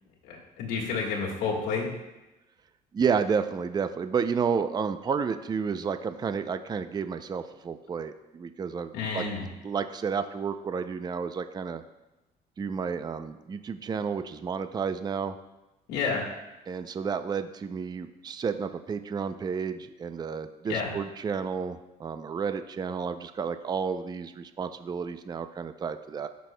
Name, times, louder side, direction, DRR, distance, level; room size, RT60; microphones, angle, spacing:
voice 1, 0.2-1.9 8.9-9.4 15.9-16.2 20.7-20.9, left 5 dB, 85° left, -3 dB, 1.7 m, -30 dB
voice 2, 2.9-9.2 9.6-11.8 12.6-15.4 16.7-26.3, right 6 dB, 25° right, 10 dB, 0.4 m, -31 dB
14.5 x 6.2 x 2.2 m, 1.0 s
cardioid pair, 110°, 17 cm